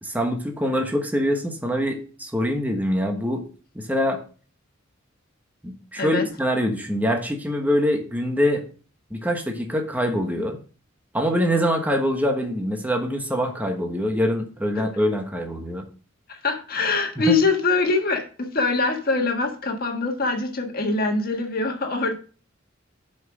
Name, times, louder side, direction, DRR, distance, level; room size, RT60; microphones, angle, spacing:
voice 1, 0.0-3.5 3.7-4.2 5.6-8.7 9.1-10.6 11.1-15.9 17.2-17.4, equal, 10° right, 3 dB, 1.2 m, -24 dB
voice 2, 16.3-22.1, left 3 dB, 50° left, 3 dB, 1.6 m, -23 dB
7.5 x 5.5 x 6.2 m, 0.38 s
head